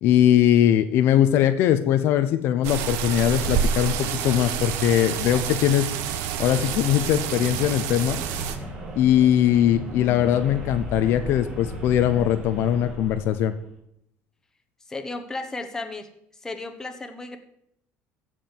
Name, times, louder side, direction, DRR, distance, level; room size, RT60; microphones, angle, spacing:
voice 1, 0.0-5.9 6.4-8.2 9.0-13.5, left 11 dB, 60° left, 9 dB, 0.9 m, -21 dB
sound 1, 2.6-8.6, right 8 dB, 75° right, 1.3 m, -28 dB
sound 2, 6.4-13.6, right 1 dB, 25° right, 3.0 m, -37 dB
voice 2, 14.9-16.1 16.4-17.4, left 2 dB, 10° left, 6 dB, 1.3 m, -34 dB
15.0 x 5.0 x 7.6 m, 0.76 s
cardioid pair, 145°, 5 cm